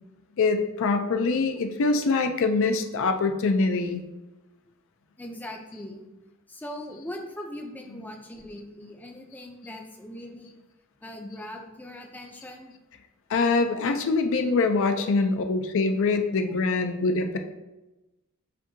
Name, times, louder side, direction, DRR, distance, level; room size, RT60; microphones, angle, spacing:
voice 1, 0.4-4.0 13.3-17.4, left 3 dB, 60° left, 6 dB, 0.4 m, -24 dB
voice 2, 5.2-6.0 6.5-10.6 11.0-12.7 14.8-15.0, left 1 dB, 10° left, 1 dB, 0.5 m, -40 dB
7.5 x 2.7 x 2.6 m, 1.0 s
head